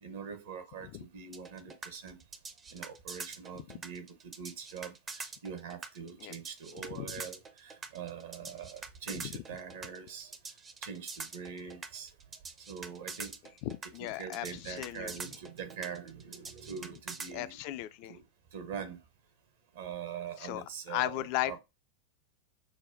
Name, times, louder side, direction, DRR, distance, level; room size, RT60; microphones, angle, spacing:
voice 1, 0.0-2.2 2.7-4.9 5.4-10.3 10.8-12.1 12.7-13.3 14.0-17.6 18.1-18.2 18.5-19.0 19.8-21.6, right 7 dB, 55° right, 0.8 m, -43 dB
sound 1, 1.3-17.3, right 4 dB, 20° right, 0.5 m, -44 dB
voice 2, 13.6-15.1 17.3-18.2 20.4-20.6 20.9-21.6, left 15 dB, 45° left, 0.3 m, -36 dB
6.3 x 2.2 x 2.5 m
figure-of-eight pair, 90°, 0 cm